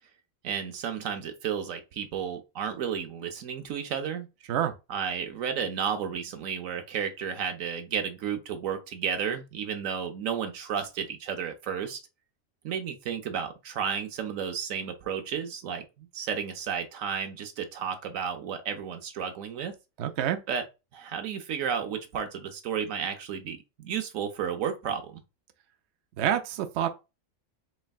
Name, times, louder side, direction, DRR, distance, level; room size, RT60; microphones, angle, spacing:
voice 1, 0.4-4.3 4.9-12.0 12.6-19.7 20.5-20.6 20.9-25.2, right 7 dB, 85° right, 1.1 m, -32 dB
voice 2, 20.0-20.4 26.2-26.9, right 10 dB, 65° right, 0.8 m, -27 dB
4.4 x 3.2 x 2.3 m
omnidirectional pair, 1.4 m